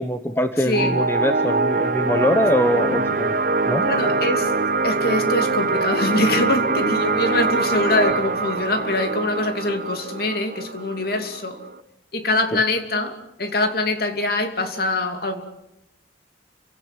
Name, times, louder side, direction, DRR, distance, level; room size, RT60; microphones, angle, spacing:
voice 1, 0.0-3.3 3.7-3.8, equal, 10° left, 7 dB, 1.2 m, -22 dB
voice 2, 0.6-1.0 3.8-4.6 4.8-11.6 12.1-15.4, left 2 dB, 55° left, 6 dB, 2.7 m, -24 dB
sound 1, 0.7-11.8, right 3 dB, 45° right, 0.9 m, -23 dB
29.5 x 17.0 x 9.1 m, 0.88 s
head